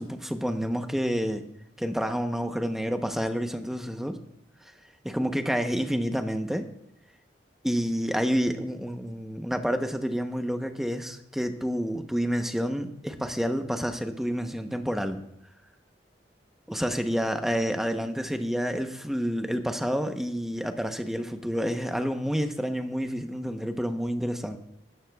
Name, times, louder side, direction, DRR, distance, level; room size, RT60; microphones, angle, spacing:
voice 1, 0.0-1.5 1.8-4.2 4.6-4.7 5.0-6.7 7.6-15.2 16.7-24.6, equal, ahead, 6 dB, 0.8 m, -29 dB
19.5 x 13.0 x 2.3 m, 0.77 s
head